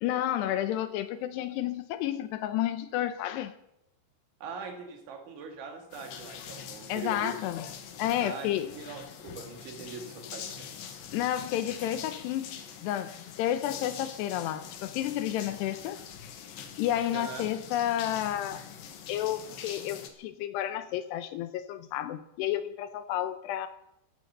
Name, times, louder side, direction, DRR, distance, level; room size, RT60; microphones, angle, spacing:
voice 1, 0.0-3.5 6.9-7.7 8.0-8.7 11.1-16.0 16.8-18.6 19.1-23.7, left 12 dB, 80° left, 2.6 m, -31 dB
voice 2, 4.4-7.4 8.2-10.7 17.1-17.5, right 5 dB, 80° right, 4.6 m, -42 dB
sound 1, 5.9-20.1, left 8 dB, 65° left, 2.6 m, -44 dB
15.0 x 13.5 x 6.6 m
omnidirectional pair, 5.3 m